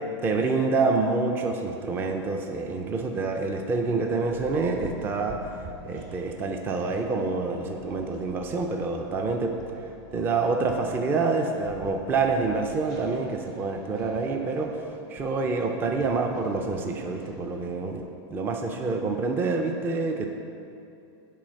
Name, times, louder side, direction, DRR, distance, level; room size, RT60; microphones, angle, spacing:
voice 1, 0.2-9.5 9.8-18.0 18.3-20.3, right 3 dB, 15° right, 4 dB, 0.4 m, -27 dB
sound 1, 4.3-13.5, right 1 dB, 70° right, 1.5 m, -47 dB
sound 2, 4.7-17.7, right 2 dB, 45° right, 1.2 m, -50 dB
7.5 x 4.6 x 6.3 m, 2.7 s
supercardioid pair, 155°, 15 cm